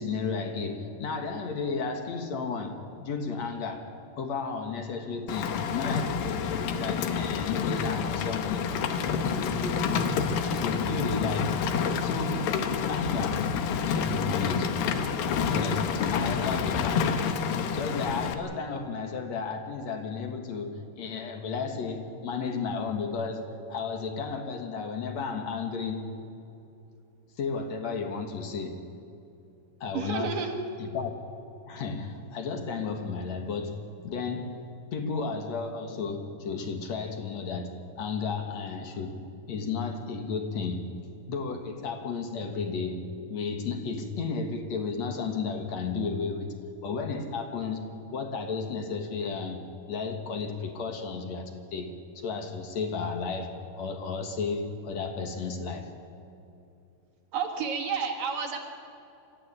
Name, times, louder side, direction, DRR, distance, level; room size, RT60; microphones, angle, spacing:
voice 1, 0.0-8.7 9.0-11.5 12.0-12.6 12.9-13.5 13.8-14.9 15.5-17.3 17.7-26.1 27.4-28.9 29.8-30.5 30.8-31.1 31.7-46.6 46.8-55.9, left 4 dB, 55° left, 5 dB, 2.4 m, -33 dB
Rain, 5.3-18.3, left 6 dB, 75° left, 2.8 m, -28 dB
voice 2, 29.9-30.6 57.3-58.6, right 6 dB, 65° right, 2 dB, 3.3 m, -30 dB
25.5 x 14.5 x 9.8 m, 2.7 s
omnidirectional pair, 4.3 m